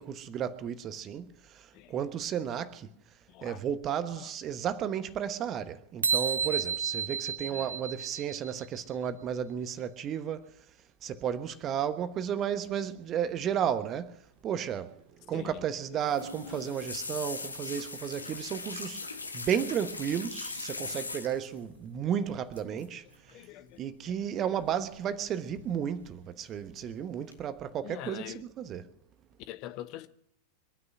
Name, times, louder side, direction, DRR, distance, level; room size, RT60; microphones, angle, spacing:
voice 1, 0.0-2.9 3.4-10.5 11.0-14.1 14.4-15.0 15.3-19.0 19.3-23.0 23.8-28.9, right 9 dB, 30° right, 1.2 m, -33 dB
voice 2, 3.3-3.6 4.1-4.3 6.4-6.6 7.4-7.7 15.3-15.6 15.9-16.0 23.3-24.5 27.8-28.4 29.5-30.1, left 14 dB, 40° left, 1.0 m, -45 dB
sound 1, 6.0-8.7, right 6 dB, 75° right, 0.5 m, -31 dB
sound 2, 16.0-21.6 22.5-22.8 23.1-23.4 24.6-25.2 25.5-26.1 26.5-26.9 27.3-27.4, left 3 dB, 80° left, 1.6 m, -40 dB
24.0 x 9.7 x 6.1 m
figure-of-eight pair, 90°, 0 cm